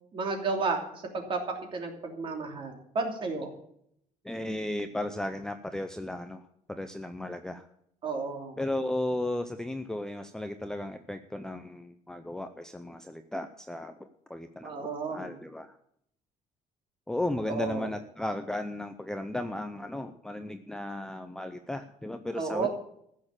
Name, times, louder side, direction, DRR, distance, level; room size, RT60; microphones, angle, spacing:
voice 1, 0.1-1.4 1.7-3.5 8.0-8.6 14.6-15.3 17.5-17.9 22.4-22.7, right 4 dB, 35° right, 3 dB, 3.0 m, -32 dB
voice 2, 4.2-7.7 8.6-15.8 17.1-22.7, left 1 dB, 5° left, 8 dB, 0.6 m, -35 dB
15.0 x 6.6 x 8.9 m, 0.71 s
cardioid pair, 165°, 15 cm